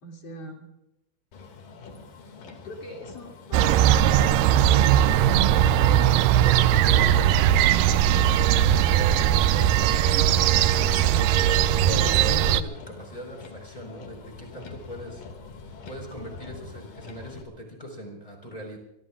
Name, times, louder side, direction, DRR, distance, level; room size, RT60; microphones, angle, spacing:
voice 1, 0.0-0.7 2.6-8.1, left 2 dB, 40° left, 0 dB, 3.3 m, -43 dB
Motor vehicle (road), 1.3-17.4, left 4 dB, 60° left, 3.7 m, -45 dB
sound 1, 3.5-12.6, right 10 dB, 85° right, 1.9 m, -19 dB
voice 2, 10.5-11.3 11.9-15.2 15.9-18.8, equal, 10° left, 0 dB, 4.2 m, -40 dB
25.0 x 23.0 x 2.5 m, 0.90 s
omnidirectional pair, 4.7 m